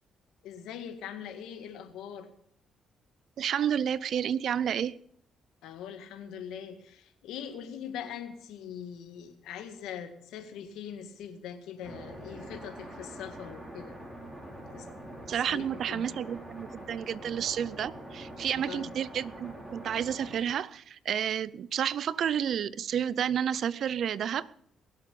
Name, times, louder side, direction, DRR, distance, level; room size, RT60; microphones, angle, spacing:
voice 1, 0.4-2.3 5.6-14.0 14.7-14.9 15.4-16.1 18.7-18.9, left 8 dB, 90° left, 1.9 m, -42 dB
voice 2, 3.4-5.0 15.3-24.5, right 9 dB, 65° right, 0.6 m, -30 dB
sound 1, 11.8-20.4, right 1 dB, 15° right, 5.8 m, -44 dB
22.0 x 7.7 x 7.0 m
cardioid pair, 90°, 0 cm